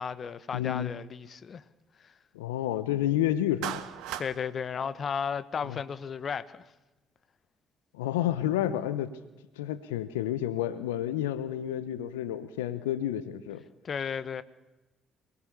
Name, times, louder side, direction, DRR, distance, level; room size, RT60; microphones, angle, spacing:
voice 1, 0.0-1.6 2.0-2.1 4.2-6.6 13.8-14.4, left 6 dB, 50° left, 1.4 m, -34 dB
voice 2, 0.5-0.9 2.3-3.8 5.6-5.8 7.9-9.1 9.6-13.6, left 12 dB, 85° left, 1.0 m, -30 dB
Clapping, 3.6-4.3, right 12 dB, 75° right, 1.7 m, -35 dB
27.0 x 20.5 x 7.0 m
hypercardioid pair, 50°, 0 cm